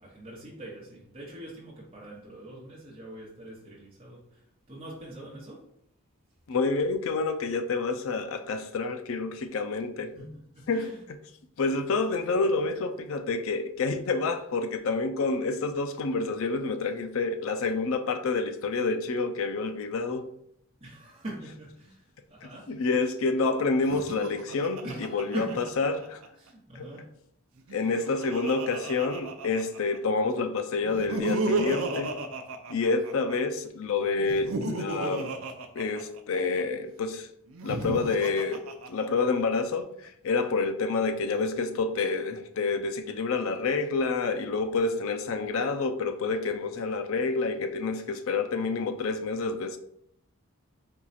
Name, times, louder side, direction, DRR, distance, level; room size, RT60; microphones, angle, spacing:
voice 1, 0.0-5.7 10.1-11.0 20.8-22.7 24.8-25.6 26.4-27.0 27.7-27.9, right 1 dB, 25° right, 1.0 m, -42 dB
voice 2, 6.5-10.1 10.7-10.9 11.6-20.3 22.7-24.8 25.1-25.5 25.8-26.2 27.7-32.1 32.7-35.3 35.7-37.3 37.6-38.6 38.9-49.8, left 4 dB, 65° left, 0.4 m, -28 dB
Laughter, 23.7-26.3 27.6-30.0 30.8-33.4 34.2-36.6 37.5-39.4, right 3 dB, 70° right, 0.5 m, -34 dB
4.4 x 2.4 x 4.1 m
head